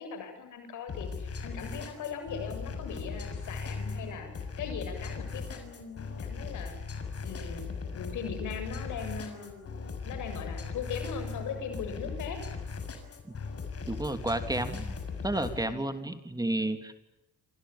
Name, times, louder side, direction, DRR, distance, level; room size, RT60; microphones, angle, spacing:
voice 1, 0.0-6.8 7.2-12.4 15.6-15.8, left 6 dB, 80° left, 8 dB, 7.4 m, -40 dB
sound 1, 0.9-15.7, left 4 dB, 50° left, 6.6 m, -38 dB
voice 2, 13.9-14.9 15.2-16.9, right 1 dB, 10° right, 8 dB, 3.1 m, -31 dB
28.5 x 26.5 x 7.3 m, 0.92 s
cardioid pair, 90°, 30 cm